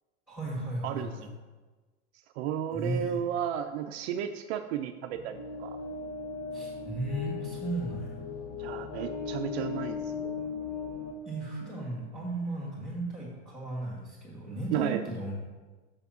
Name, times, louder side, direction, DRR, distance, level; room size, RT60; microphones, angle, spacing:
voice 1, 0.3-1.3 2.7-3.2 6.5-8.2 11.3-15.4, right 1 dB, ahead, -6 dB, 1.9 m, -35 dB
voice 2, 0.8-1.3 2.4-5.8 8.6-10.3 14.7-15.0, right 9 dB, 65° right, 7 dB, 0.5 m, -33 dB
sound 1, 5.1-12.1, left 5 dB, 85° left, 1.2 m, -38 dB
6.4 x 3.5 x 5.8 m, 1.3 s
hypercardioid pair, 105°, 35 cm